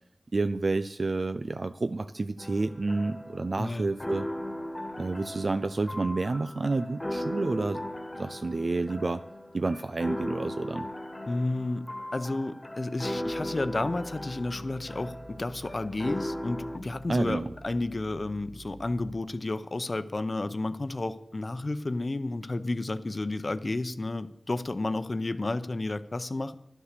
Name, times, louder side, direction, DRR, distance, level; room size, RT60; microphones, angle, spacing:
voice 1, 0.3-4.3 5.0-7.8 8.1-9.2 9.5-10.9 17.1-17.5, right 3 dB, 60° right, 10 dB, 0.4 m, -29 dB
sound 1, 2.4-16.8, left 1 dB, 25° left, 1.4 m, -37 dB
voice 2, 11.3-26.5, left 2 dB, 50° left, 12 dB, 0.7 m, -32 dB
sound 2, 13.2-19.2, right 2 dB, 45° right, 0.7 m, -49 dB
11.5 x 9.9 x 6.7 m, 0.81 s
wide cardioid pair, 55°, 0 cm